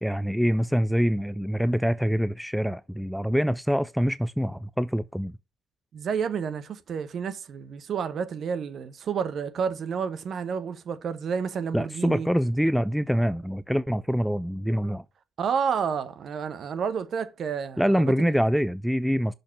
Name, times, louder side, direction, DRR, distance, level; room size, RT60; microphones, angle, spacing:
voice 1, 0.0-5.3 11.7-15.0 17.8-19.3, equal, ahead, 0.3 m, -25 dB
voice 2, 5.9-12.3 15.4-18.3, right 6 dB, 45° right, 0.9 m, -30 dB
6.3 x 5.2 x 6.0 m
figure-of-eight pair, 55°, 0 cm